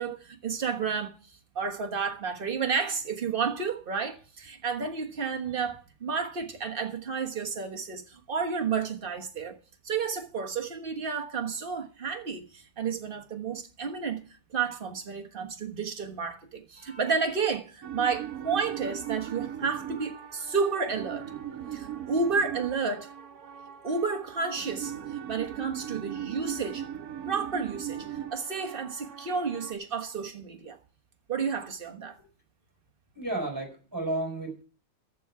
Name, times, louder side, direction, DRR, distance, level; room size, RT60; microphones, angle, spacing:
voice 1, 0.0-9.6 9.8-14.2 14.5-21.3 21.7-23.1 23.8-26.8 27.2-30.8 31.3-32.2, right 5 dB, 35° right, 1.5 m, -31 dB
sound 1, 17.8-29.7, right 10 dB, 60° right, 1.4 m, -39 dB
voice 2, 33.1-34.6, right 2 dB, 10° right, 4.4 m, -33 dB
14.0 x 4.8 x 8.2 m
omnidirectional pair, 1.9 m